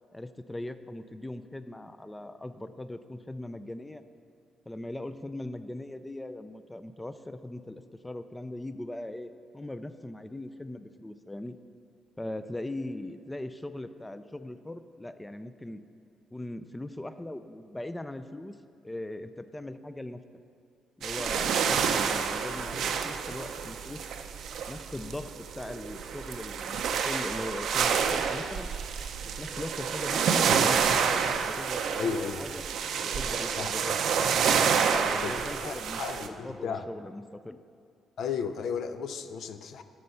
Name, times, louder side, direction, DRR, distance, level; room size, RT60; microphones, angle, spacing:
voice 1, 0.1-4.0 4.7-11.6 12.2-15.8 16.3-18.6 18.8-20.2 21.0-24.1 24.7-26.8 27.0-28.7 29.2-30.9 31.2-32.6 33.0-34.0 34.9-37.6, left 1 dB, 10° left, 10 dB, 0.4 m, -40 dB
sound 1, 21.0-36.3, right 6 dB, 75° right, 0.6 m, -28 dB
voice 2, 32.0-32.4 33.6-33.7 34.8-36.8 38.2-39.8, left 6 dB, 70° left, 9 dB, 0.6 m, -34 dB
9.5 x 6.6 x 7.0 m, 2.3 s
cardioid pair, 90°, 0 cm